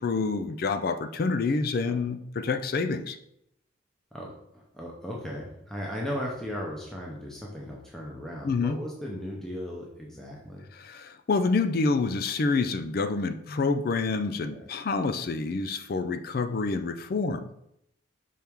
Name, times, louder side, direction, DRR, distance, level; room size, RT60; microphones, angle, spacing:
voice 1, 0.0-3.2 8.4-8.8 10.7-17.5, left 4 dB, 45° left, 10 dB, 0.3 m, -27 dB
voice 2, 4.1-10.6 14.5-14.7, equal, ahead, -3 dB, 0.7 m, -37 dB
5.7 x 4.6 x 3.6 m, 0.77 s
head